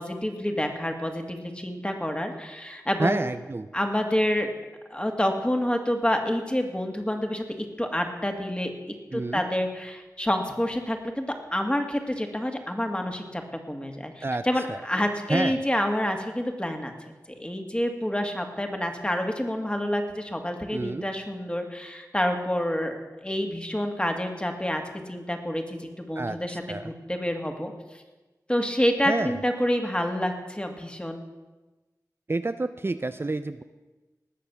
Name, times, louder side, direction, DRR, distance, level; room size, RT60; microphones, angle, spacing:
voice 1, 0.0-3.2 3.7-4.6 4.9-7.4 7.8-8.7 9.1-13.4 13.7-16.9 17.4-23.0 23.2-27.7 28.5-31.2, left 1 dB, 15° left, 4 dB, 2.2 m, -28 dB
voice 2, 3.0-3.7 9.1-9.4 14.2-14.4 14.7-14.8 15.3-15.6 20.7-21.1 26.2-26.9 29.0-29.4 32.3-33.6, right 2 dB, 35° right, 10 dB, 0.5 m, -29 dB
19.0 x 6.7 x 7.0 m, 1.2 s
cardioid pair, 45°, 7 cm